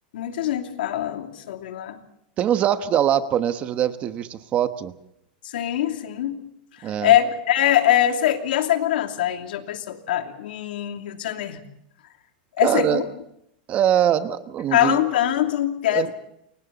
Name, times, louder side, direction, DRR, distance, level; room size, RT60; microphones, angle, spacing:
voice 1, 0.1-2.0 5.4-6.4 6.8-11.6 12.6-13.0 14.7-16.1, left 12 dB, 80° left, 5 dB, 2.9 m, -23 dB
voice 2, 2.4-4.9 6.8-7.1 12.6-13.0 13.7-15.0 15.9-16.1, right 10 dB, 25° right, 10 dB, 1.1 m, -22 dB
29.5 x 24.0 x 4.1 m, 0.75 s
supercardioid pair, 165°, 5 cm